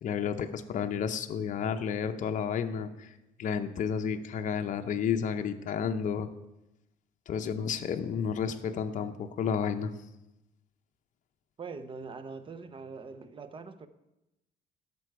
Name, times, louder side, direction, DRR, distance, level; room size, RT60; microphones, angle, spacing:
voice 1, 0.0-3.1 3.4-6.3 7.3-9.9, left 7 dB, 50° left, 0.7 m, -31 dB
voice 2, 11.6-13.9, right 4 dB, 30° right, 0.8 m, -42 dB
11.5 x 6.8 x 4.7 m
cardioid pair, 110°, 17 cm